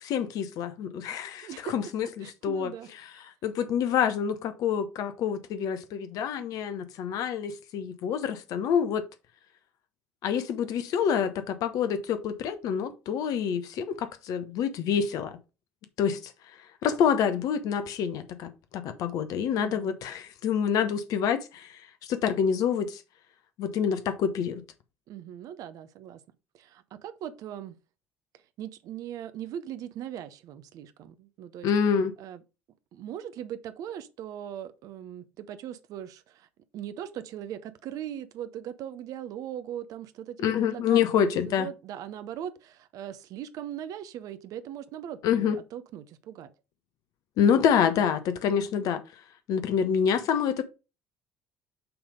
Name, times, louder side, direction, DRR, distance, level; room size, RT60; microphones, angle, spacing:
voice 1, 0.0-2.7 3.4-9.1 10.2-15.4 16.0-16.3 16.8-23.0 23.6-24.6 31.6-32.1 40.4-41.7 45.2-45.6 47.4-49.0 49.5-50.6, left 7 dB, 60° left, 0.9 m, -27 dB
voice 2, 1.4-1.7 2.0-3.2 19.5-20.0 25.1-26.2 26.5-27.8 28.6-31.7 32.2-32.4 32.9-46.5, right 10 dB, 60° right, 0.7 m, -40 dB
6.0 x 3.4 x 5.1 m
hypercardioid pair, 60°, 7 cm